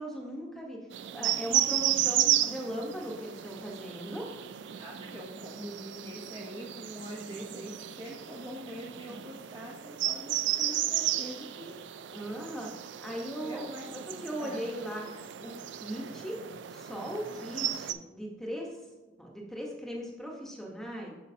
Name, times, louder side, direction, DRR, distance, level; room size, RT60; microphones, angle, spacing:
voice 1, 0.0-4.3 9.1-9.2 12.1-12.7 13.0-13.7 14.1-15.1 15.4-16.4 16.7-18.8 19.2-21.1, equal, ahead, -1 dB, 1.0 m, -38 dB
sound 1, 0.9-17.9, right 12 dB, 75° right, 0.4 m, -33 dB
voice 2, 4.8-11.8 13.4-14.0 14.2-14.6, equal, 20° right, -2 dB, 0.8 m, -44 dB
8.3 x 6.3 x 2.7 m, 1.2 s
head